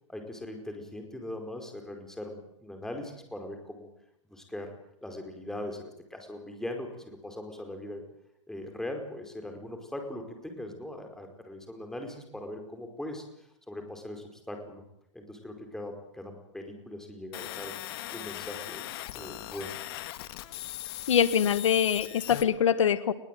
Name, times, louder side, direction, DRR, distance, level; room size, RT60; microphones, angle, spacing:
voice 1, 0.1-3.9 4.3-4.7 5.0-8.0 8.5-14.8 15.1-17.7 18.1-18.8 19.1-19.8, left 1 dB, 5° left, 4 dB, 4.9 m, -40 dB
sound 1, 17.3-22.4, left 16 dB, 55° left, 2.0 m, -39 dB
voice 2, 21.1-23.1, left 8 dB, 90° left, 13 dB, 1.7 m, -24 dB
21.5 x 21.5 x 9.3 m, 0.78 s
hypercardioid pair, 140°, 16 cm